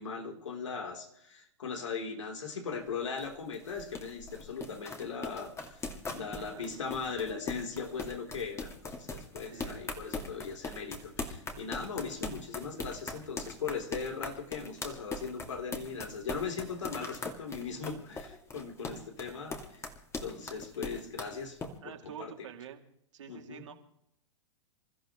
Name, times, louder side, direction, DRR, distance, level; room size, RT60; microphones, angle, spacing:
voice 1, 0.0-5.8 6.1-19.8 20.2-21.6 21.8-22.5 23.3-23.7, left 5 dB, 80° left, 3 dB, 3.7 m, -39 dB
sound 1, 2.7-21.7, left 3 dB, 15° left, 2.4 m, -41 dB
voice 2, 9.4-9.9 21.8-22.8 23.1-23.7, right 9 dB, 75° right, 3 dB, 2.8 m, -47 dB
27.5 x 14.0 x 3.2 m, 0.76 s
hypercardioid pair, 110°, 16 cm